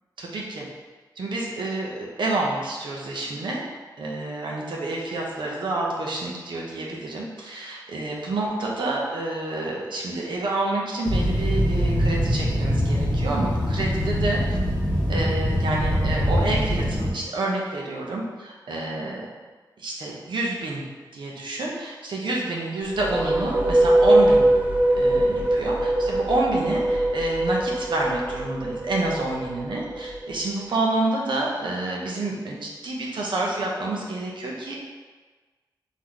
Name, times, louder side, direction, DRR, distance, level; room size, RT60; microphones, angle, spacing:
voice 1, 0.2-0.7 1.2-3.6 4.0-14.6 15.1-19.3 19.8-20.8 21.1-24.4 25.0-34.7, right 2 dB, 80° right, -3 dB, 0.9 m, -28 dB
sound 1, 11.1-17.1, equal, 20° left, 1.0 m, -23 dB
sound 2, 22.8-30.5, right 1 dB, 20° right, 0.6 m, -22 dB
3.7 x 3.1 x 3.9 m, 1.3 s
wide cardioid pair, 90°, 8 cm